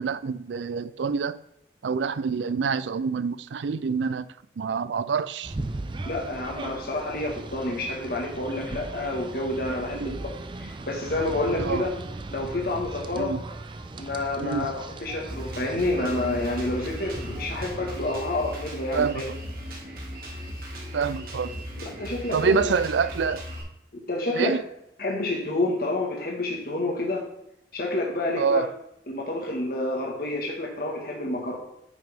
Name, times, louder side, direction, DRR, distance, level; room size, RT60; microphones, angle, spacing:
voice 1, 0.0-1.4 1.8-4.3 4.6-5.5 9.9-10.2 11.6-11.9 13.1-13.4 14.4-14.7 18.9-19.4 20.9-21.7 22.3-23.5 24.3-24.6 28.4-28.7, right 5 dB, 90° right, 0.4 m, -26 dB
sound 1, 5.4-18.2, right 2 dB, 25° right, 0.5 m, -38 dB
voice 2, 6.1-10.2 10.6-11.9 12.3-13.3 14.0-14.7 15.0-19.2 21.8-22.6 24.1-24.6 25.0-27.2 27.7-28.6 29.1-31.5, left 2 dB, 55° left, 1.6 m, -28 dB
Drum kit, 15.3-23.6, equal, 55° right, 2.0 m, -37 dB
9.2 x 6.1 x 3.5 m
head